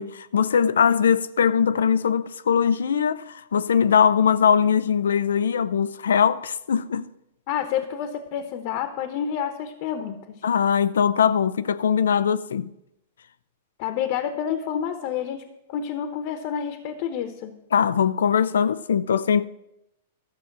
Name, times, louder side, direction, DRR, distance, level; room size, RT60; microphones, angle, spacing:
voice 1, 0.0-7.0 10.4-12.7 17.7-19.4, left 7 dB, 85° left, 0.5 m, -21 dB
voice 2, 7.5-10.4 13.8-17.5, left 9 dB, 50° left, 1.1 m, -29 dB
12.5 x 7.1 x 6.0 m
hypercardioid pair, 125°, 0 cm